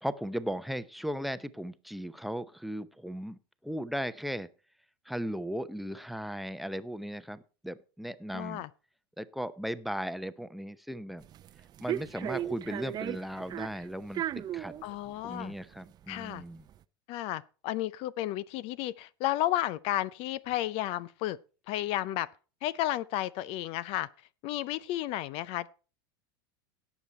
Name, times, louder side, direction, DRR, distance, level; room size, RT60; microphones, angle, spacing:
voice 1, 0.0-4.5 5.1-8.6 9.2-11.3 11.8-14.7 15.2-16.7, equal, ahead, 0.8 m, -37 dB
voice 2, 8.3-8.7 14.8-15.5 16.1-16.4 17.1-21.4 21.7-22.3 22.6-24.1 24.4-25.7, left 14 dB, 50° left, 0.5 m, -32 dB
sound 1, 11.2-16.8, right 11 dB, 35° right, 0.6 m, -37 dB
17.0 x 7.1 x 4.3 m
hypercardioid pair, 100°, 12 cm